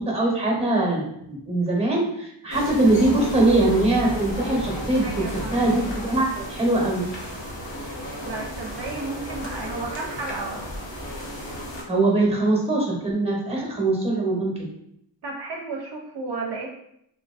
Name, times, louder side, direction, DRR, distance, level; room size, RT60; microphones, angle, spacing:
voice 1, 0.0-7.1 11.9-14.5, right 2 dB, 15° right, -2 dB, 0.7 m, -22 dB
sound 1, 2.5-11.8, equal, 70° left, 0.8 m, -34 dB
sound 2, 2.6-8.0, right 1 dB, 40° left, 0.8 m, -38 dB
voice 2, 5.0-5.7 8.2-10.7 15.2-16.7, right 3 dB, 60° right, -1 dB, 0.5 m, -33 dB
3.0 x 2.4 x 2.3 m, 0.76 s
wide cardioid pair, 120°, 46 cm